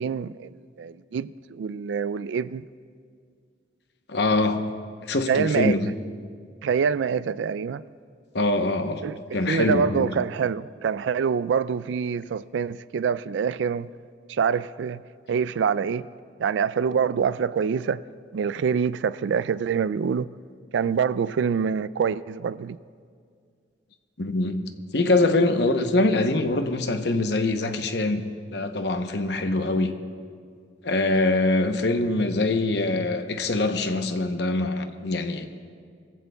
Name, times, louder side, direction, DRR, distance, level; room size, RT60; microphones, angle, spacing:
voice 1, 0.0-2.6 5.3-5.8 6.6-7.8 9.0-13.9 14.3-15.0 15.3-16.1 16.4-18.0 18.3-20.3 20.7-22.8, right 6 dB, 80° right, 0.3 m, -25 dB
voice 2, 4.1-4.6 5.0-5.9 8.3-9.0 9.3-10.1 24.2-24.7 24.9-28.2 28.5-29.9 30.8-35.5, left 2 dB, 65° left, 0.8 m, -23 dB
21.5 x 15.0 x 2.3 m
head